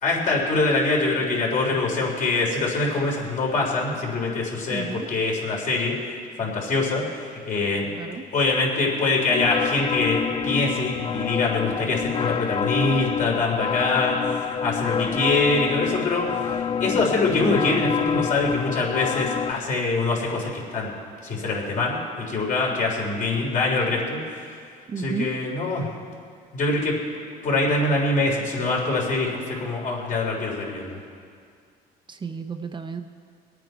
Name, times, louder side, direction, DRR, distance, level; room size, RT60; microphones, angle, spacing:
voice 1, 0.0-5.9 6.4-7.9 8.3-20.9 21.2-24.2 25.0-25.9 26.5-27.0 27.4-31.0, left 3 dB, 50° left, -2 dB, 3.8 m, -24 dB
voice 2, 4.7-5.1 8.0-8.2 24.9-25.3 32.1-33.0, right 5 dB, 30° right, 6 dB, 0.7 m, -32 dB
sound 1, 9.3-19.5, left 7 dB, 30° left, 0.3 m, -27 dB
22.5 x 9.1 x 4.6 m, 2.2 s
cardioid pair, 110°, 17 cm